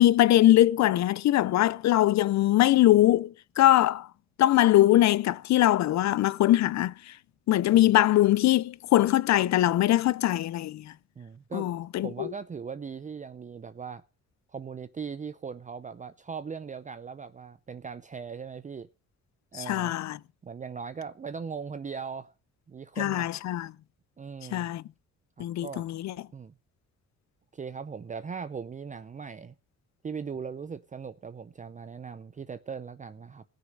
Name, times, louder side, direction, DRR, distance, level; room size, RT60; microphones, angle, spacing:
voice 1, 0.0-4.1 4.4-6.9 7.5-10.9 11.5-12.3 19.5-20.2 23.0-23.7 24.5-24.8 25.4-26.1, left 14 dB, 65° left, 0.6 m, -22 dB
voice 2, 11.2-11.7 12.0-14.0 14.5-18.9 19.5-19.9 20.4-22.3 22.7-23.3 24.2-24.7 25.4-25.8 26.3-26.5 27.5-29.5 30.0-33.4, right 6 dB, 25° right, 0.6 m, -39 dB
18.0 x 6.6 x 5.2 m
cardioid pair, 90°, 30 cm